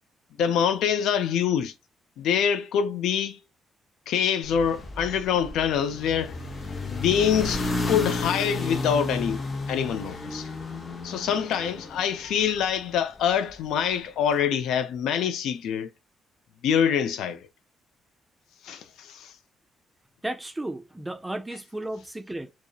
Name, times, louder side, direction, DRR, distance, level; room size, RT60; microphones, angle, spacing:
voice 1, 0.4-1.7 2.2-3.4 4.1-6.4 6.9-9.4 9.7-10.5 11.0-15.9 16.6-17.5 18.6-19.3, left 8 dB, 80° left, 0.3 m, -25 dB
sound 1, 4.4-12.8, left 3 dB, 35° left, 0.6 m, -32 dB
voice 2, 20.2-22.5, right 1 dB, 10° right, 0.4 m, -34 dB
2.6 x 2.0 x 2.3 m
cardioid pair, 90°, 0 cm